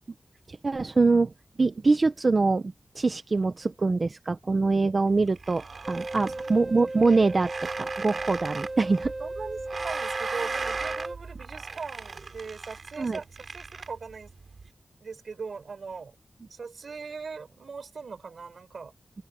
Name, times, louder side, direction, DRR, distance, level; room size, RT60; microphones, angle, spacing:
voice 1, 0.5-1.3 1.6-7.5 7.8-9.1 13.0-13.2, right 3 dB, 50° right, 0.9 m, -24 dB
sound 1, 5.1-14.7, right 4 dB, 70° right, 3.8 m, -38 dB
sound 2, 5.8-11.2, right 2 dB, 35° right, 1.5 m, -36 dB
voice 2, 6.2-6.5 9.2-14.3 15.0-16.2 16.5-18.9, right 5 dB, 90° right, 5.6 m, -40 dB
open air
wide cardioid pair, 85°, 0 cm